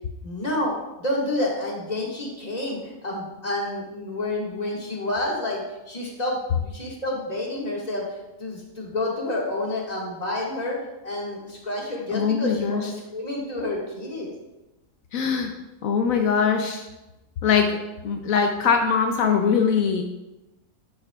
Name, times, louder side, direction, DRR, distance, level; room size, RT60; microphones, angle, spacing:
voice 1, 0.2-14.3, left 1 dB, 30° left, -3 dB, 1.9 m, -29 dB
voice 2, 12.1-12.8 15.1-15.5 15.8-16.9 17.4-17.8 18.0-20.0, left 6 dB, 80° left, 4 dB, 1.1 m, -22 dB
10.5 x 8.1 x 2.4 m, 0.99 s
omnidirectional pair, 1.5 m